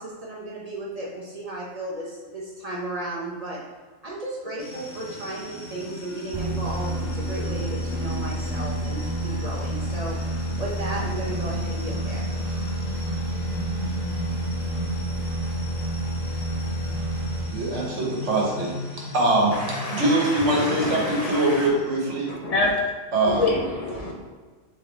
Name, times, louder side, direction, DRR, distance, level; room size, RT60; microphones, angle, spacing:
voice 1, 0.0-3.6 4.0-10.2 10.6-12.2, right 1 dB, 40° right, -4 dB, 0.7 m, -34 dB
sound 1, 4.6-22.3, left 2 dB, 70° left, 1.1 m, -37 dB
sound 2, 6.3-18.0, right 1 dB, 15° right, 1.4 m, -29 dB
voice 2, 17.5-18.7 19.1-22.3 23.1-23.4, right 2 dB, 85° right, -2 dB, 1.4 m, -23 dB
voice 3, 19.6-21.7 22.3-22.7 23.3-24.1, left 2 dB, 45° left, 0 dB, 0.5 m, -27 dB
3.7 x 3.6 x 3.9 m, 1.4 s
omnidirectional pair, 1.2 m